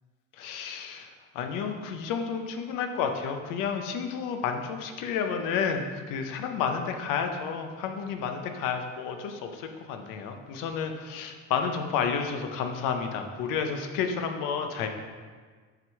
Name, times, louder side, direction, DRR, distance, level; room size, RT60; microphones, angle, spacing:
voice 1, 0.4-1.1 1.3-14.9, left 6 dB, 90° left, 5 dB, 0.7 m, -31 dB
5.8 x 3.6 x 4.6 m, 1.5 s
cardioid pair, 135°, 31 cm